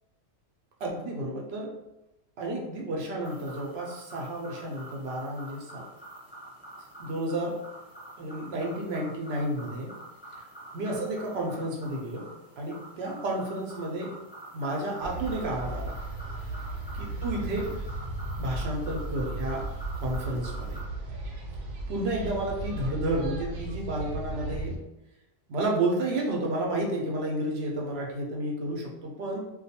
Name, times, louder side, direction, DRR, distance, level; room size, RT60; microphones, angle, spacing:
voice 1, 0.8-1.7 2.4-5.8 7.0-7.6 8.2-9.9 10.7-12.3 12.6-14.1 14.5-15.9 16.9-17.7 18.4-19.7 19.9-20.8 21.9-24.8 25.5-29.5, right 1 dB, 65° right, -1 dB, 0.7 m, -31 dB
sound 1, 3.2-20.8, right 1 dB, 5° right, 0.4 m, -46 dB
sound 2, 15.0-24.8, right 2 dB, 90° right, 1.0 m, -35 dB
2.3 x 2.2 x 2.7 m, 0.94 s
omnidirectional pair, 1.3 m